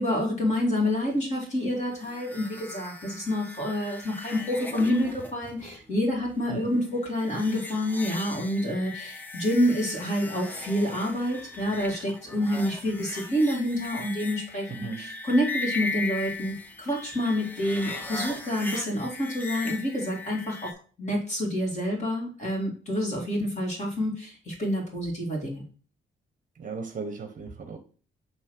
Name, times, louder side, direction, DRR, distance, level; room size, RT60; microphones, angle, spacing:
voice 1, 0.0-25.6, left 1 dB, 35° left, 2.3 m, -28 dB
sound 1, 1.9-20.7, left 3 dB, 10° left, 0.6 m, -38 dB
voice 2, 14.7-15.1 26.6-27.8, right 4 dB, 40° right, 0.8 m, -36 dB
7.3 x 3.1 x 4.5 m
wide cardioid pair, 175°, 20 cm